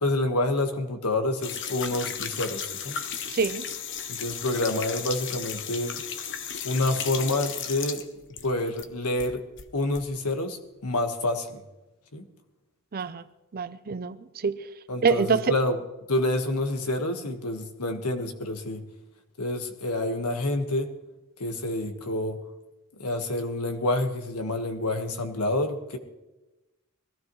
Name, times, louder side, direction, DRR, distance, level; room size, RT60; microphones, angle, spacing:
voice 1, 0.0-3.0 4.1-5.9 6.6-8.0 8.4-9.4 9.7-11.6 12.1-12.2 14.9-15.8 16.1-18.8 19.4-20.9 21.4-22.4 23.0-26.0, left 2 dB, 85° left, 1.5 m, -28 dB
sound 1, 1.4-8.9 9.2-10.0, left 7 dB, 55° left, 0.9 m, -35 dB
voice 2, 3.3-3.7 12.9-13.2 13.5-14.6 15.0-15.6, right 5 dB, 45° right, 0.5 m, -25 dB
20.5 x 15.0 x 3.1 m
head